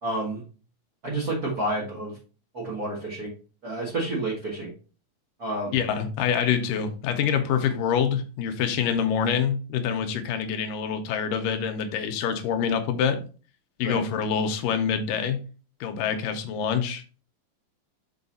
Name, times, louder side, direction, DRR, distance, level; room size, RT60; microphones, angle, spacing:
voice 1, 0.0-0.4 1.0-2.2 2.5-3.3 3.6-4.7 5.4-5.7 13.8-14.0, right 2 dB, 35° right, 1.7 m, -29 dB
voice 2, 5.7-13.2 13.8-15.4 15.8-17.0, left 7 dB, 80° left, 2.2 m, -26 dB
5.8 x 5.5 x 4.1 m
omnidirectional pair, 4.2 m